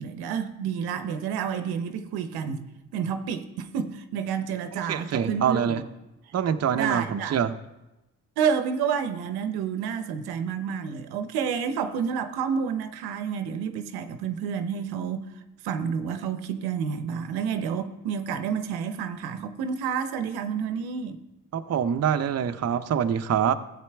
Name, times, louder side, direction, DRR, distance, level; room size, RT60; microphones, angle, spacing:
voice 1, 0.0-5.8 6.7-7.4 8.4-15.3 15.6-21.2, right 7 dB, 85° right, 0.8 m, -29 dB
voice 2, 4.9-5.8 6.3-7.5 21.5-23.5, right 8 dB, 45° right, 0.6 m, -25 dB
13.5 x 8.2 x 3.4 m
supercardioid pair, 60°, 36 cm